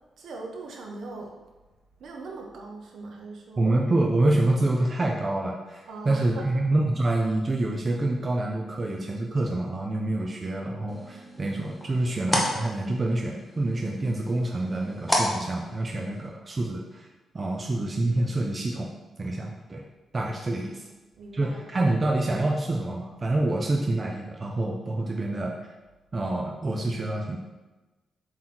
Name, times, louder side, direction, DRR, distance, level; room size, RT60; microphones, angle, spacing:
voice 1, 0.2-1.4 2.0-3.7 5.8-6.6 20.4-20.7 21.2-21.6, right 3 dB, 60° right, 1 dB, 1.0 m, -40 dB
voice 2, 3.6-17.1 17.3-19.8 20.1-20.9 21.3-25.6 26.1-27.4, right 2 dB, 25° right, 0 dB, 0.5 m, -27 dB
sound 1, 10.9-16.3, left 1 dB, 5° left, 0.9 m, -32 dB
7.5 x 3.0 x 4.3 m, 1.2 s
wide cardioid pair, 175°, 0 cm